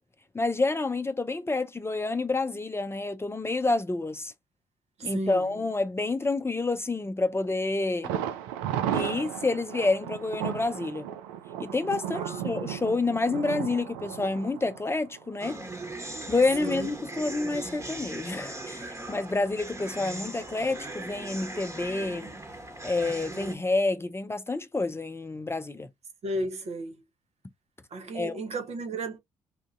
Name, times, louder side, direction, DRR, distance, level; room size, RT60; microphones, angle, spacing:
voice 1, 0.3-4.3 5.0-8.2 8.9-11.1 11.6-15.6 16.3-22.3 22.8-25.9 28.1-28.4, left 3 dB, 20° left, 0.6 m, -28 dB
voice 2, 5.0-5.5 12.1-12.4 16.6-16.9 26.2-26.9 27.9-29.2, right 2 dB, 55° right, 1.0 m, -34 dB
Thunder, 8.0-15.8 16.1-16.2 16.6-16.7, right 10 dB, 85° right, 0.4 m, -34 dB
sound 1, 15.4-23.5, right 2 dB, 25° right, 1.4 m, -39 dB
3.6 x 2.6 x 2.5 m
hypercardioid pair, 50°, 13 cm